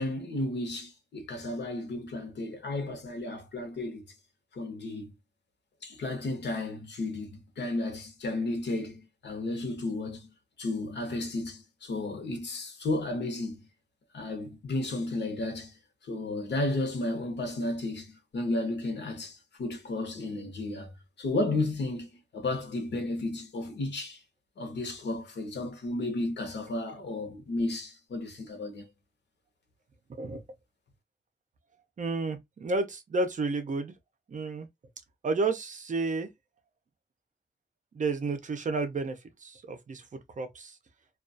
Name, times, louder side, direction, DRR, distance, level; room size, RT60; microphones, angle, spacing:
voice 1, 0.0-4.0 4.5-5.1 5.8-10.3 10.6-13.7 14.1-24.2 24.6-28.9, left 2 dB, 85° left, 0.8 m, -33 dB
voice 2, 30.1-30.4 32.0-33.9 34.3-34.7 35.2-36.3 37.9-40.8, right 3 dB, 45° right, 0.5 m, -31 dB
2.3 x 2.3 x 2.5 m
wide cardioid pair, 140°, 17 cm